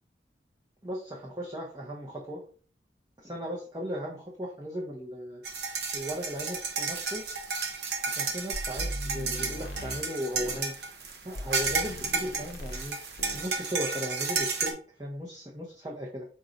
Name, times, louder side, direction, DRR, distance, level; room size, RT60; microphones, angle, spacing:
voice 1, 0.8-2.4 3.2-5.4 5.9-7.2 8.0-10.7 11.2-12.9 13.3-16.3, equal, 20° right, -3 dB, 0.7 m, -37 dB
sound 1, 5.4-14.7, right 4 dB, 60° right, 0.9 m, -32 dB
sound 2, 8.5-10.7 11.4-12.9 13.2-13.5, equal, 75° left, 0.8 m, -39 dB
4.9 x 2.7 x 3.9 m, 0.41 s
head